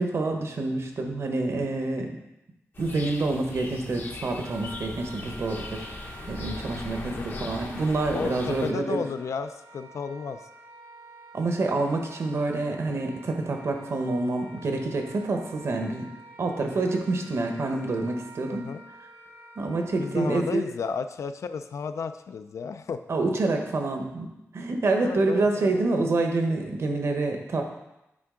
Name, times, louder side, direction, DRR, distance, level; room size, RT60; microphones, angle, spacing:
voice 1, 0.0-2.1 2.8-5.9 6.3-9.0 11.3-16.1 16.4-18.6 19.6-20.6 23.1-24.3 24.5-27.6, right 2 dB, 60° right, 4 dB, 0.9 m, -27 dB
sound 1, 2.7-8.7, left 3 dB, 40° left, 0.7 m, -39 dB
Wind instrument woodwind instrument, 4.4-20.5, right 2 dB, 90° right, 2.7 m, -49 dB
voice 2, 8.1-10.4 18.5-18.8 20.0-23.0 25.0-25.8, left 5 dB, 75° left, 10 dB, 0.4 m, -33 dB
8.5 x 4.6 x 3.7 m, 0.91 s
wide cardioid pair, 170°, 5 cm